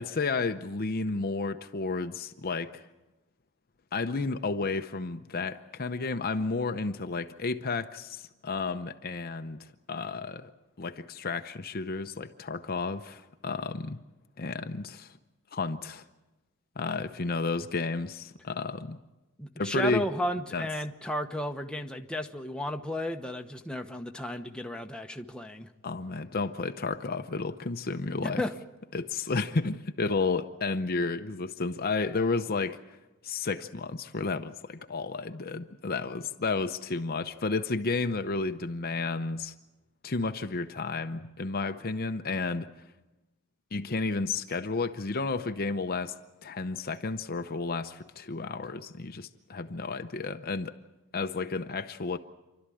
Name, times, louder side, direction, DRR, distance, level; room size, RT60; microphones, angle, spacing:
voice 1, 0.0-2.8 3.9-10.5 10.8-14.0 14.4-15.2 15.5-16.0 16.8-19.0 19.6-20.0 20.5-20.7 25.8-28.4 28.9-32.8 33.2-39.5 40.0-42.7 43.7-46.1 46.4-50.7 51.1-52.2, left 3 dB, 45° left, 0.7 m, -32 dB
voice 2, 19.4-25.7 28.2-28.6, left 1 dB, 5° left, 1.0 m, -33 dB
28.5 x 12.5 x 9.9 m
head